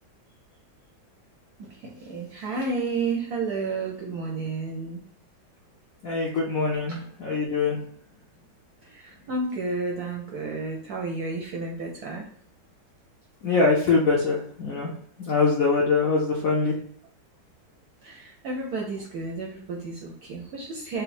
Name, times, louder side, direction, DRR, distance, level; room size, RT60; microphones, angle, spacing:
voice 1, 1.6-5.1 6.9-7.0 8.8-12.3 18.0-21.0, right 3 dB, 70° right, 0 dB, 0.9 m, -31 dB
voice 2, 6.0-7.8 13.4-14.9 15.2-16.7, left 4 dB, 65° left, -3 dB, 0.8 m, -23 dB
4.0 x 2.1 x 4.1 m, 0.64 s
omnidirectional pair, 2.2 m